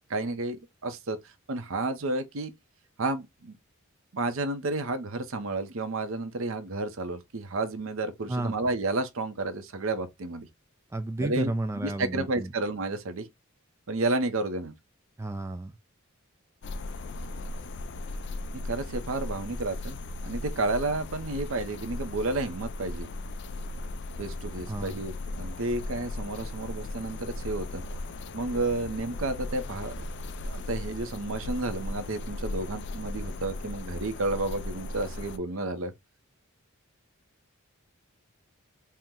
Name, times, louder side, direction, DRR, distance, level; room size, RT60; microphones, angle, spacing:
voice 1, 0.1-1.2 1.5-2.5 3.0-3.6 4.1-10.5 11.2-11.5 11.8-13.3 13.9-14.7 18.6-23.1 24.2-27.8 28.3-30.1 30.4-35.9, right 2 dB, 65° right, 0.7 m, -31 dB
voice 2, 10.9-12.5 15.2-15.8 24.7-25.0, right 2 dB, 15° right, 0.3 m, -32 dB
sound 1, 16.6-35.4, left 2 dB, 55° left, 0.4 m, -37 dB
4.4 x 2.1 x 3.6 m
head